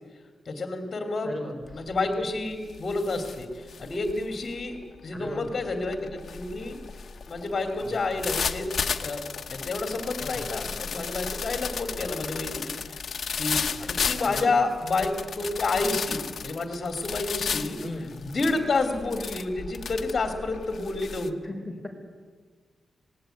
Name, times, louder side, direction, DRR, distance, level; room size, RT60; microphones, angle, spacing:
voice 1, 0.4-1.3 1.7-6.8 7.3-8.7 9.0-12.8 13.4-17.8 18.3-21.3, left 3 dB, 40° left, 5 dB, 2.8 m, -29 dB
voice 2, 1.2-1.9 5.1-5.5 7.8-7.9 10.2-10.4 14.3-14.5 17.8-18.1 21.4-21.9, left 1 dB, ahead, 3 dB, 5.2 m, -37 dB
sound 1, 1.7-2.0 2.4-21.3, left 6 dB, 55° left, 1.3 m, -34 dB
26.5 x 19.5 x 9.3 m, 1.5 s
wide cardioid pair, 135°, 0 cm